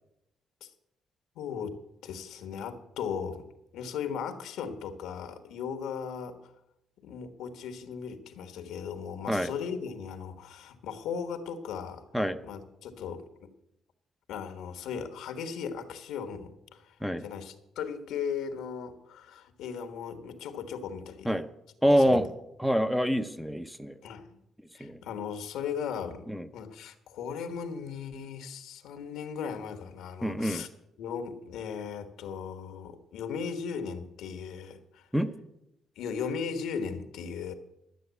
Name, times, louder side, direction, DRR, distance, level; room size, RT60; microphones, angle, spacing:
voice 1, 1.3-3.4 3.7-6.5 7.0-13.5 14.3-21.3 22.0-22.3 24.0-24.4 24.7-26.3 26.5-30.7 31.0-35.1 36.0-37.5, left 6 dB, 85° left, 8 dB, 1.4 m, -37 dB
voice 2, 21.8-22.2 22.6-24.0 24.8-25.0 26.3-26.4 30.2-30.6 35.1-35.3, equal, ahead, 9 dB, 0.7 m, -26 dB
11.5 x 8.0 x 8.2 m, 0.86 s
cardioid pair, 90°, 0 cm